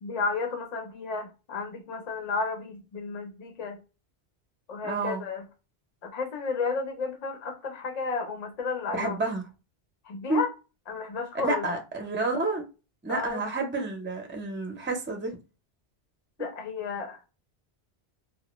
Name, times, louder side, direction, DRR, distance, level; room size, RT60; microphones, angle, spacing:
voice 1, 0.0-3.8 4.7-5.4 6.0-9.2 10.0-10.5 10.9-11.7 13.1-13.4 16.4-17.2, left 4 dB, 45° left, 0.7 m, -32 dB
voice 2, 4.8-5.2 8.9-9.4 10.3-10.4 11.4-12.6 13.0-15.3, right 3 dB, 15° right, 0.4 m, -29 dB
2.1 x 2.1 x 3.0 m
omnidirectional pair, 1.1 m